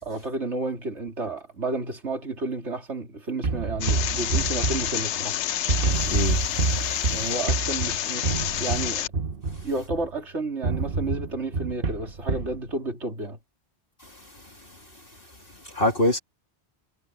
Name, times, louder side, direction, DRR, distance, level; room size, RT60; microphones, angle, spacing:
voice 1, 0.0-5.4 7.1-8.3 8.6-9.1 9.6-13.4, right 2 dB, 85° right, 3.7 m, -31 dB
sound 1, 3.4-5.4 5.7-10.2 10.6-12.6, right 4 dB, 55° right, 1.3 m, -27 dB
sound 2, 3.8-9.1, left 11 dB, 85° left, 0.9 m, -29 dB
voice 2, 5.9-6.5 9.6-9.7 14.0-14.8 15.5-16.2, left 1 dB, 55° left, 2.9 m, -27 dB
omnidirectional pair, 1.2 m